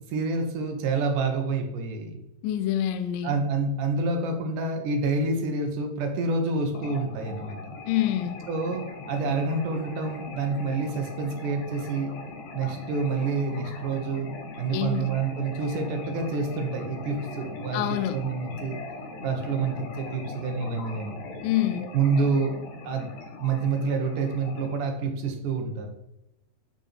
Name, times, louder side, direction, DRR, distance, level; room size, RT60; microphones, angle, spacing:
voice 1, 0.1-2.2 3.2-7.6 8.5-12.2 12.5-17.8 18.1-18.8 19.2-21.1 21.9-22.5 22.8-23.1 23.4-25.9, right 4 dB, 65° right, 4 dB, 2.3 m, -28 dB
voice 2, 2.4-3.4 7.9-8.4 14.7-15.1 17.7-18.2 21.4-21.9, left 12 dB, 85° left, 9 dB, 2.0 m, -26 dB
sound 1, 6.7-24.9, left 3 dB, 65° left, 2.8 m, -40 dB
12.0 x 4.4 x 4.4 m, 0.86 s
omnidirectional pair, 4.6 m